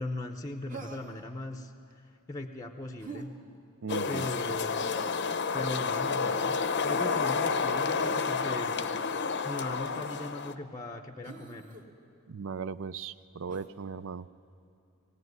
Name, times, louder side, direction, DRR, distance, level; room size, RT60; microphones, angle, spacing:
voice 1, 0.0-1.7 2.3-3.4 4.1-4.8 5.5-6.6 6.8-8.8 9.4-11.7, left 1 dB, 15° left, 5 dB, 0.7 m, -38 dB
Human voice, 0.7-1.2 3.0-3.3 4.8-5.2 6.8-7.4 8.7-9.0 9.9-10.2 11.2-11.9 13.5-13.7, right 3 dB, 35° right, 1.7 m, -45 dB
voice 2, 3.8-4.3 12.3-14.3, right 5 dB, 65° right, 16 dB, 0.5 m, -37 dB
Garden Ambience, 3.9-10.5, left 5 dB, 55° left, 0.7 m, -30 dB
19.0 x 16.5 x 9.4 m, 2.5 s
head